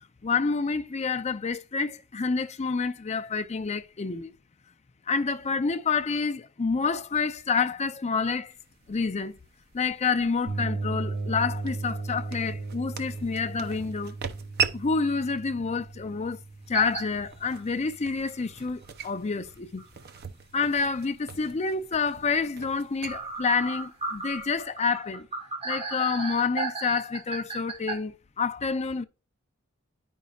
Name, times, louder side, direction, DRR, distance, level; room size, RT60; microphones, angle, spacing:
voice 1, 0.2-4.3 5.1-8.5 8.9-9.4 9.7-14.1 14.7-16.4 16.7-19.8 20.5-25.3 25.6-29.0, left 4 dB, 30° left, 0.5 m, -28 dB
sound 1, 8.5-24.6, right 7 dB, 50° right, 0.6 m, -40 dB
sound 2, 10.5-18.2, right 3 dB, 85° right, 2.7 m, -36 dB
sound 3, 16.7-17.0 17.5-17.6 19.0-19.1 19.8-19.9 20.2-20.3 23.1-28.0, right 3 dB, 30° right, 1.7 m, -34 dB
10.0 x 5.4 x 2.4 m
head